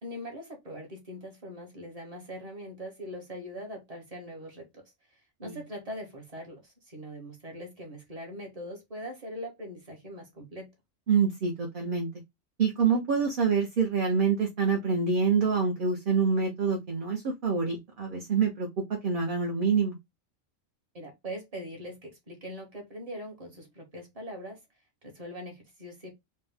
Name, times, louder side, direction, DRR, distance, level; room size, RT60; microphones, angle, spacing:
voice 1, 0.0-4.8 5.4-10.7 20.9-24.6 25.0-26.1, equal, 30° right, 1.3 m, -41 dB
voice 2, 11.1-12.1 12.6-18.7 19.0-20.0, right 5 dB, 45° right, 0.9 m, -26 dB
4.3 x 2.2 x 3.4 m
omnidirectional pair, 1.3 m